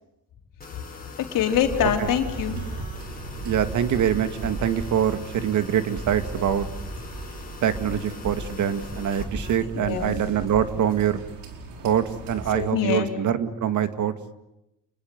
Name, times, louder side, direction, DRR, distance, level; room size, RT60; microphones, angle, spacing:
sound 1, 0.6-9.6, left 3 dB, 25° left, 5.3 m, -43 dB
voice 1, 1.2-2.6 9.7-10.2 12.5-13.1, left 9 dB, 70° left, 4 dB, 4.0 m, -24 dB
sound 2, 1.5-10.7, right 1 dB, 35° right, 7.9 m, -36 dB
sound 3, 2.3-12.7, right 4 dB, 90° right, 4.8 m, -41 dB
voice 2, 3.4-6.7 7.6-11.2 11.8-14.1, right 9 dB, 60° right, 10 dB, 2.1 m, -24 dB
30.0 x 21.5 x 7.9 m, 0.87 s
cardioid pair, 100°, 34 cm